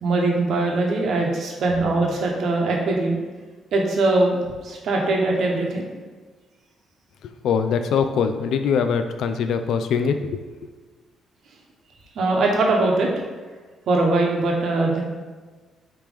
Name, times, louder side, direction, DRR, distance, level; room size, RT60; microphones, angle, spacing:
voice 1, 0.0-3.2 3.7-5.9 12.2-13.1 13.9-15.0, right 2 dB, 60° right, 0 dB, 0.9 m, -21 dB
voice 2, 7.4-10.4, left 6 dB, 75° left, 8 dB, 0.3 m, -22 dB
4.9 x 3.0 x 3.5 m, 1.4 s
cardioid pair, 125°, 0 cm